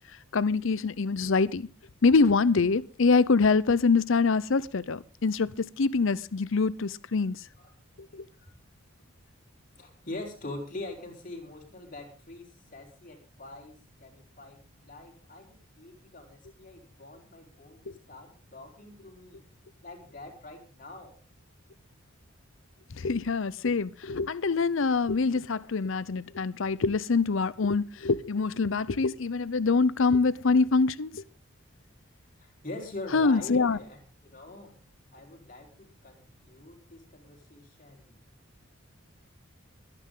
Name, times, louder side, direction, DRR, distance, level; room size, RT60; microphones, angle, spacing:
voice 1, 0.3-1.7 2.0-7.4 8.1-8.2 17.9-18.0 23.0-31.2 33.1-33.8, left 4 dB, 65° left, 0.6 m, -25 dB
voice 2, 9.8-19.4 19.8-21.2 32.4-34.7 35.1-38.1, left 2 dB, 35° left, 4.4 m, -44 dB
23.5 x 10.0 x 3.8 m
head